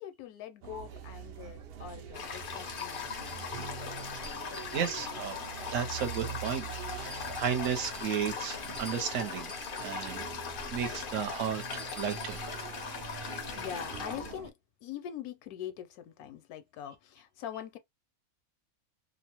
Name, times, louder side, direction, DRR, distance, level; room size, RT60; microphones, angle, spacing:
voice 1, 0.0-3.5 13.5-17.8, left 10 dB, 85° left, 1.1 m, -43 dB
sound 1, 0.6-14.5, right 7 dB, 85° right, 0.5 m, -44 dB
Toilet flush, 2.1-14.3, left 6 dB, 65° left, 0.5 m, -40 dB
sound 2, 2.8-3.5 4.0-5.4 6.0-6.7 7.1-10.0 11.6-12.5, left 4 dB, 35° right, 0.9 m, -51 dB
voice 2, 4.6-5.4 5.7-9.5 9.8-10.2 10.7-12.5, right 8 dB, 70° right, 0.9 m, -34 dB
2.6 x 2.0 x 2.8 m
omnidirectional pair, 1.5 m